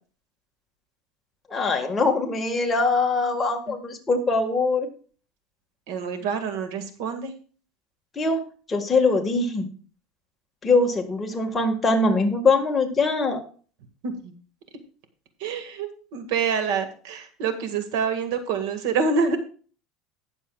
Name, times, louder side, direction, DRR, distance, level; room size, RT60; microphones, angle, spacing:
voice 1, 1.5-4.9 8.1-8.4 8.7-9.7 10.6-13.4, left 3 dB, 15° left, 2 dB, 1.6 m, -22 dB
voice 2, 5.9-7.3 14.0-14.3 15.4-19.4, right 5 dB, 75° right, 7 dB, 1.8 m, -27 dB
19.0 x 7.1 x 2.3 m, 0.40 s
cardioid pair, 155°, 0 cm